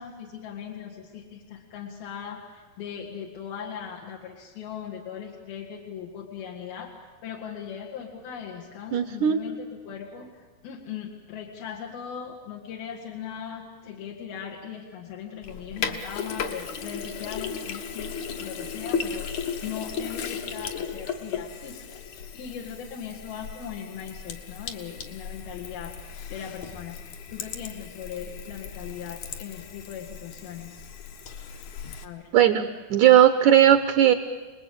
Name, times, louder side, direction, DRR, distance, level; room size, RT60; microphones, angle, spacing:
voice 1, 0.0-6.9 7.2-19.3 19.6-30.8 32.0-32.3, left 8 dB, 80° left, -2 dB, 3.8 m, -39 dB
voice 2, 8.9-9.4 32.3-34.1, right 11 dB, 70° right, 9 dB, 2.0 m, -18 dB
Sink (filling or washing), 15.4-32.0, left 6 dB, 60° left, 2.5 m, -36 dB
29.5 x 20.0 x 8.8 m, 1.4 s
omnidirectional pair, 4.3 m